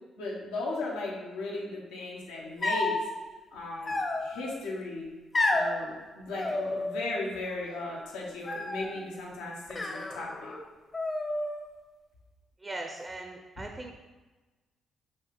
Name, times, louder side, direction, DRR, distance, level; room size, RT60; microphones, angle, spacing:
voice 1, 0.2-3.0 3.5-5.1 5.5-10.5, left 2 dB, 90° left, -3 dB, 0.8 m, -36 dB
sound 1, 2.6-3.1 3.9-4.5 5.3-5.7 6.4-7.2 7.5-8.0 8.5-9.0 9.7-10.6 10.9-11.7, left 2 dB, 35° left, 0.7 m, -31 dB
voice 2, 12.6-13.9, right 2 dB, 30° right, 3 dB, 0.5 m, -39 dB
5.4 x 2.7 x 3.6 m, 1.2 s
supercardioid pair, 60°, 0 cm